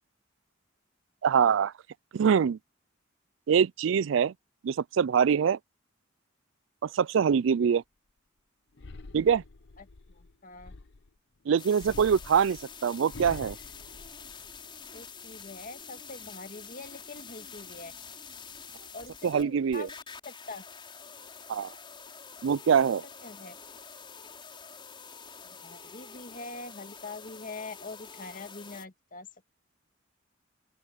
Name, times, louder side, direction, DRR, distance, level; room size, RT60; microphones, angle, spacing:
voice 1, 1.2-1.7 2.1-2.6 3.5-4.3 4.6-5.6 6.8-7.8 9.1-9.4 11.5-13.6 19.2-19.9 21.5-21.7 22.4-23.0, right 7 dB, 70° right, 0.4 m, -24 dB
sound 1, 8.8-11.2 11.8-14.8 15.3-15.8, left 3 dB, 60° left, 0.7 m, -47 dB
voice 2, 9.8-10.7 14.9-17.9 18.9-20.0 20.2-20.6 23.2-23.6 25.6-29.3, left 3 dB, 45° left, 1.9 m, -44 dB
sound 2, 11.6-28.8, left 6 dB, 25° left, 5.2 m, -47 dB
open air
head